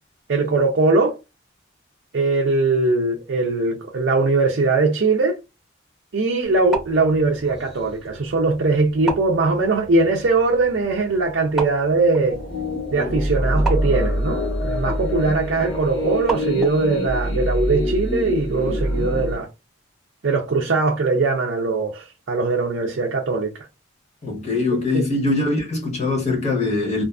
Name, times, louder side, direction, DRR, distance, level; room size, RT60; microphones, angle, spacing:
voice 1, 0.3-1.2 2.1-5.4 6.1-12.4 12.9-19.5 20.2-23.5 24.7-25.0, right 3 dB, 60° right, 0.5 m, -21 dB
sound 1, 6.4-17.0, right 4 dB, ahead, 0.8 m, -35 dB
sound 2, 12.3-19.4, equal, 65° left, 1.0 m, -24 dB
voice 2, 24.2-27.0, left 3 dB, 35° left, 0.9 m, -22 dB
2.4 x 2.4 x 2.3 m
head